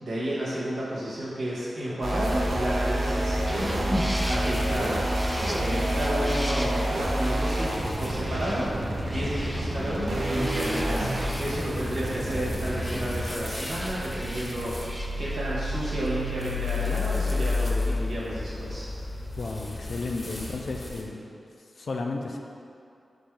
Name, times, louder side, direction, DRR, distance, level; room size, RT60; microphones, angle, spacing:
voice 1, 0.0-8.7 9.1-11.1 11.4-18.9, equal, 85° right, -8 dB, 1.2 m, -31 dB
sound 1, 2.0-13.3, right 1 dB, 65° right, 0.6 m, -28 dB
sound 2, 2.2-21.0, left 2 dB, 40° left, 0.7 m, -34 dB
sound 3, 3.5-17.5, equal, 5° left, 0.4 m, -40 dB
voice 2, 19.4-21.3 21.8-22.4, left 3 dB, 70° left, 2 dB, 0.4 m, -33 dB
3.9 x 2.6 x 4.5 m, 2.6 s
cardioid pair, 45°, 0 cm